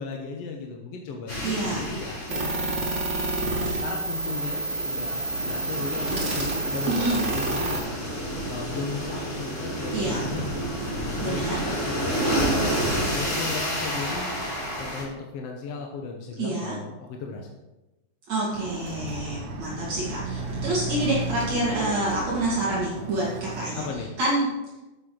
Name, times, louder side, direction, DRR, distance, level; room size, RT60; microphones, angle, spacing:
voice 1, 0.0-3.0 3.5-7.9 8.5-10.5 11.0-12.6 13.1-14.5 14.8-17.5 23.7-24.2, left 4 dB, 65° left, 1 dB, 1.9 m, -36 dB
sound 1, 1.3-15.0, equal, 40° left, 4.9 m, -30 dB
voice 2, 1.4-1.8 6.9-7.2 9.9-10.2 11.2-11.6 16.4-16.7 18.3-23.9 24.2-24.5, right 2 dB, 65° right, -7 dB, 3.4 m, -27 dB
sound 2, 2.3-7.8, right 2 dB, 25° right, 2.1 m, -29 dB
Chatter / Car passing by / Motorcycle, 18.5-23.9, right 3 dB, 45° right, 1.6 m, -33 dB
11.5 x 8.4 x 3.9 m, 1.0 s
omnidirectional pair, 3.4 m